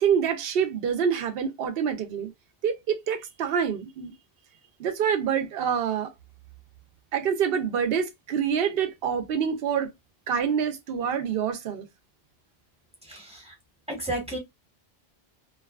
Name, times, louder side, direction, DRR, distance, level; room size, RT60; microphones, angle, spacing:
voice 1, 0.0-2.3 2.6-4.1 4.8-6.1 7.1-9.9 10.3-11.9, right 7 dB, 70° right, 0.8 m, -26 dB
voice 2, 13.0-13.5 13.9-14.4, right 1 dB, 5° right, 0.9 m, -33 dB
2.7 x 2.4 x 2.2 m
omnidirectional pair, 1.1 m